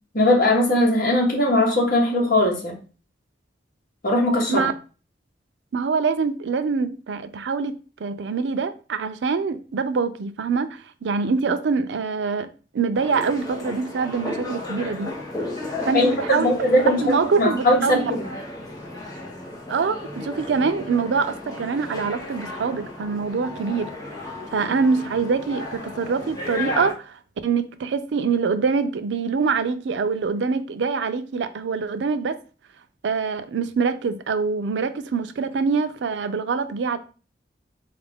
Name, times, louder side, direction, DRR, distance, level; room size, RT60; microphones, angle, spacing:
voice 1, 0.1-2.8 4.0-4.7 15.9-18.2, left 1 dB, 55° left, 1.1 m, -20 dB
voice 2, 5.7-7.8 8.0-12.5 12.7-15.1 15.9-16.5 17.0-18.1 19.7-23.9 24.5-27.2 27.4-32.4 33.0-37.0, right 5 dB, 85° right, 0.4 m, -24 dB
sound 1, 12.9-26.9, left 2 dB, 20° left, 1.0 m, -34 dB
4.0 x 2.4 x 3.5 m
head